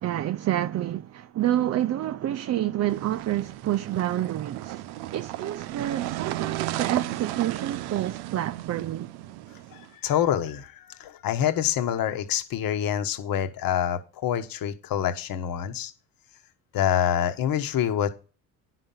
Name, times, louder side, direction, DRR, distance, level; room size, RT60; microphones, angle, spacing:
voice 1, 0.0-4.8 5.1-9.1, right 12 dB, 40° right, 0.5 m, -28 dB
sound 1, 2.9-9.9, right 15 dB, 75° right, 0.7 m, -34 dB
voice 2, 9.7-15.9 16.7-18.1, left 10 dB, 60° left, 1.3 m, -26 dB
9.8 x 5.9 x 5.5 m
supercardioid pair, 80°, 39 cm